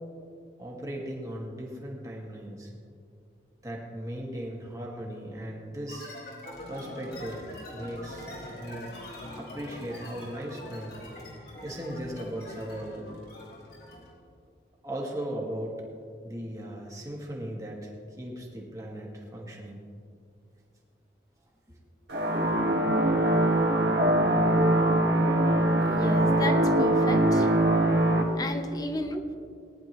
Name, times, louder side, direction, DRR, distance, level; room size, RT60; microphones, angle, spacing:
voice 1, 0.6-2.7 3.6-6.1 6.7-7.4 7.7-8.3 8.6-8.9 9.4-11.0 11.6-13.1 14.8-15.8 16.2-19.8 21.7-21.8 28.7-28.8, right 1 dB, 20° right, -2 dB, 1.8 m, -37 dB
sound 1, 5.9-14.2, left 1 dB, 70° left, 2.8 m, -43 dB
sound 2, 22.1-28.2, right 1 dB, 80° right, 1.6 m, -22 dB
voice 2, 25.7-27.5 28.4-29.4, left 1 dB, 20° left, 7 dB, 0.7 m, -33 dB
19.0 x 10.5 x 3.0 m, 2.3 s
head